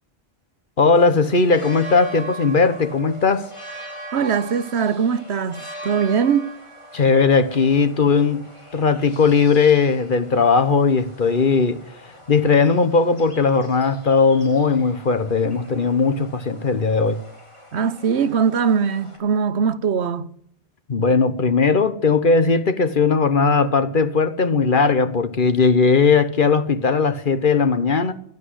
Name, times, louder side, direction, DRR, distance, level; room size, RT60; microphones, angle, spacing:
voice 1, 0.8-3.5 6.9-8.5 8.7-11.8 12.3-17.2 20.9-28.1, left 4 dB, 55° left, 1.3 m, -18 dB
sound 1, 0.9-19.2, right 1 dB, 30° left, 3.9 m, -40 dB
voice 2, 4.1-6.5 17.7-20.3, right 6 dB, 90° right, 1.2 m, -21 dB
16.5 x 10.5 x 7.9 m
omnidirectional pair, 1.1 m